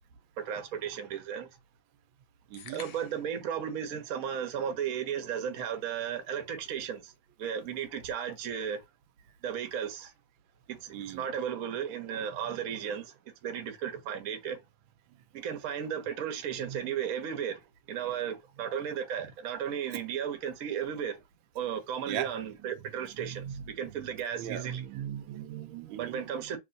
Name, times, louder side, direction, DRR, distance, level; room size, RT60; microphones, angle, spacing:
voice 1, 0.4-1.5 2.7-7.1 7.4-8.8 9.4-10.1 10.7-14.6 15.3-17.6 17.9-21.2 21.5-24.8 26.0-26.6, right 8 dB, 60° right, 1.0 m, -35 dB
sound 1, 2.5-3.4, left 9 dB, 70° left, 1.1 m, -48 dB
voice 2, 2.5-2.9 10.9-11.3 12.8-13.0 15.1-15.2 16.6-16.9 19.9-20.0 22.0-22.7 23.0-26.5, right 9 dB, 85° right, 1.4 m, -40 dB
3.1 x 3.0 x 2.5 m
omnidirectional pair, 2.1 m